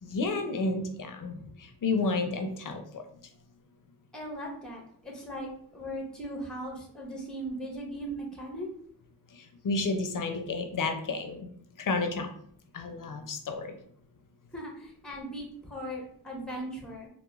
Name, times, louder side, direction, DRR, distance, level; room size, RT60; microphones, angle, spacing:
voice 1, 0.0-3.0 9.3-11.5 11.8-12.3 12.7-13.8, left 3 dB, 55° left, 6 dB, 0.5 m, -31 dB
voice 2, 4.1-8.7 14.5-17.1, right 1 dB, ahead, 0 dB, 0.6 m, -38 dB
2.3 x 2.1 x 2.9 m, 0.63 s
cardioid pair, 50°, 39 cm